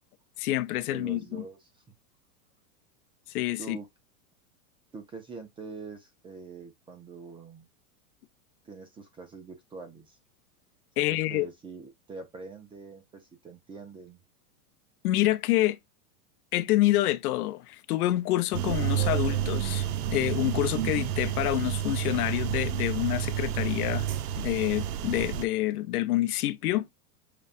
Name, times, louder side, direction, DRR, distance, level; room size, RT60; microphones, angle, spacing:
voice 1, 0.4-1.2 3.3-3.8 11.0-11.5 15.0-15.8 16.5-24.1 24.4-26.9, left 16 dB, 75° left, 0.6 m, -27 dB
voice 2, 0.9-1.6 3.6-3.9 4.9-7.7 8.6-10.2 11.0-14.2, right 4 dB, 10° right, 0.4 m, -44 dB
sound 1, 18.5-25.5, right 10 dB, 90° right, 0.6 m, -30 dB
6.6 x 2.3 x 2.4 m
supercardioid pair, 125°, 45 cm